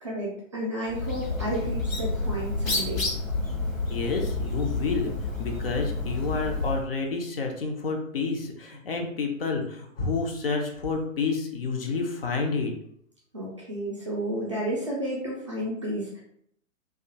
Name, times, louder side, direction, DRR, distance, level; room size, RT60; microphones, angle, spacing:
voice 1, 0.0-3.1 13.3-16.2, right 1 dB, 25° right, -6 dB, 0.4 m, -32 dB
Bird, 0.9-6.9, left 2 dB, 80° left, 0.8 m, -29 dB
voice 2, 3.9-5.1 5.4-12.7, left 4 dB, 50° left, 2 dB, 0.5 m, -29 dB
2.4 x 2.3 x 2.7 m, 0.67 s
figure-of-eight pair, 120°, 39 cm